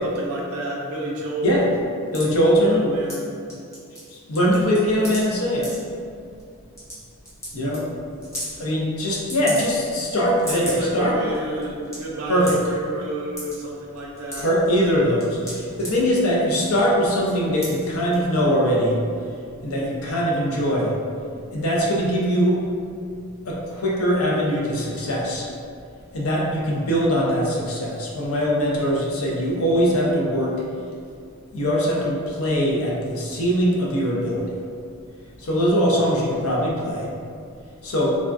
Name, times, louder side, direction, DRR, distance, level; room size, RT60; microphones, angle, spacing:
voice 1, 0.0-1.7 2.6-3.6 10.5-14.5, right 1 dB, 70° right, -3 dB, 0.5 m, -30 dB
voice 2, 2.1-2.9 4.3-5.7 7.5-7.9 8.6-11.2 12.3-12.5 14.3-19.0 19.6-20.9 21.5-22.6 23.4-25.5 26.1-30.5 31.5-34.6 35.4-37.1 37.8-38.2, equal, 65° left, -3 dB, 0.5 m, -21 dB
sound 1, 2.1-2.3 3.1-3.2 3.5-4.1 4.4-5.2 5.6-5.8 6.4-6.5 6.8-6.9 7.3-7.5 7.7-7.8 8.2-8.5 9.3-10.0 10.3-10.9 11.3-11.4 11.6-12.0 12.5-12.7 13.4-13.6 14.0-14.7 15.2-15.9 16.5-16.8 17.2-17.3 17.6-17.8 18.1-18.2, equal, 15° left, 0.6 m, -33 dB
3.4 x 2.2 x 2.5 m, 2.3 s
head